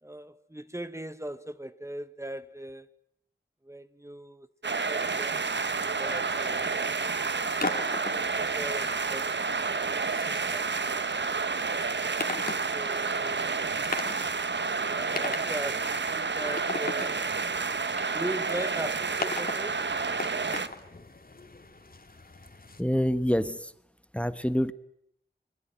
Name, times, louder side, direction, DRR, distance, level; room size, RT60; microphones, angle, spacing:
voice 1, 0.0-2.9 3.6-5.4 6.0-6.7 7.5-10.0 10.5-11.3 12.7-13.6 14.5-17.2 18.1-19.8, right 1 dB, 15° right, 1.3 m, -40 dB
sound 1, 4.6-20.7, right 4 dB, 80° right, 1.5 m, -30 dB
sound 2, 5.0-22.8, left 3 dB, 55° left, 2.9 m, -41 dB
voice 2, 22.8-23.7 24.1-24.7, equal, 5° left, 1.3 m, -26 dB
26.5 x 23.0 x 9.2 m
wide cardioid pair, 55°, 18 cm